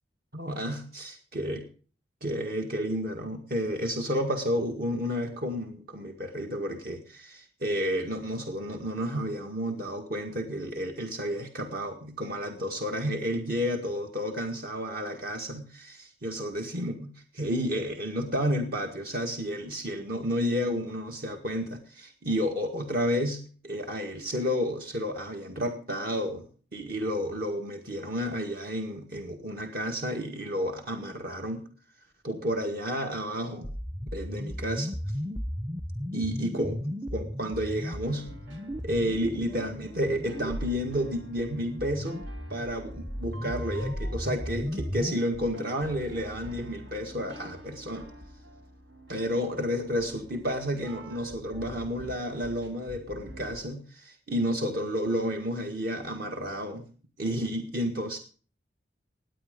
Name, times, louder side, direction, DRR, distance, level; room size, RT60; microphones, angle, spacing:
voice 1, 0.3-1.6 2.2-31.6 32.2-33.7 34.1-35.0 36.1-36.8 37.1-38.3 38.8-48.1 49.1-56.9 57.2-58.2, equal, 55° right, 3 dB, 1.8 m, -31 dB
sound 1, 33.6-45.2, equal, 10° right, 0.6 m, -35 dB
sound 2, 38.0-53.6, equal, 85° right, 2.5 m, -46 dB
18.5 x 9.5 x 5.2 m, 0.40 s
head